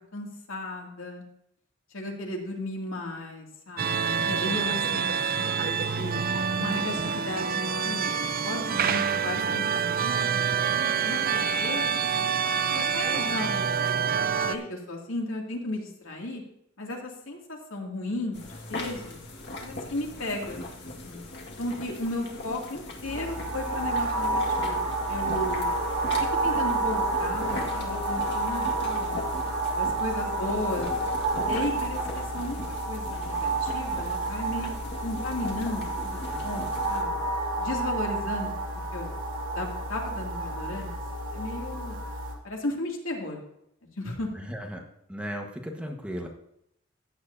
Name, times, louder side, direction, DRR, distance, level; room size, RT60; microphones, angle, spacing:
voice 1, 0.1-1.2 1.9-6.2 6.6-8.1 8.4-12.1 12.7-13.6 14.5-16.4 16.8-19.2 19.6-20.6 21.0-21.2 21.6-25.7 26.4-29.3 29.7-30.9 31.5-32.6 32.9-34.7 35.0-37.2 37.6-38.5 38.9-39.1 39.5-40.9 41.3-42.0 42.4-43.4 44.0-44.5, left 1 dB, 80° left, 0 dB, 2.6 m, -35 dB
sound 1, 3.8-14.6, right 6 dB, 45° right, 0.7 m, -27 dB
sound 2, 18.3-37.0, left 2 dB, 60° left, 1.9 m, -40 dB
sound 3, 23.0-42.3, right 2 dB, 75° right, 2.9 m, -30 dB
voice 2, 44.3-44.8 45.1-46.3, equal, 5° right, 1 dB, 1.4 m, -35 dB
15.0 x 9.4 x 2.8 m, 0.76 s
head